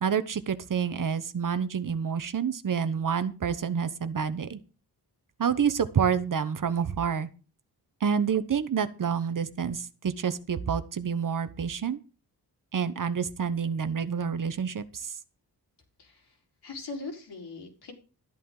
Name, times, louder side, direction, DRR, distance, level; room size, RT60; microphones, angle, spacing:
voice 1, 0.0-4.6 5.4-7.3 8.0-12.0 12.7-15.1, right 7 dB, 55° right, 12 dB, 1.1 m, -28 dB
voice 2, 16.0-16.4 16.6-17.9, left 3 dB, 85° left, 0 dB, 4.5 m, -40 dB
13.0 x 11.5 x 3.9 m, 0.34 s
wide cardioid pair, 150°, 39 cm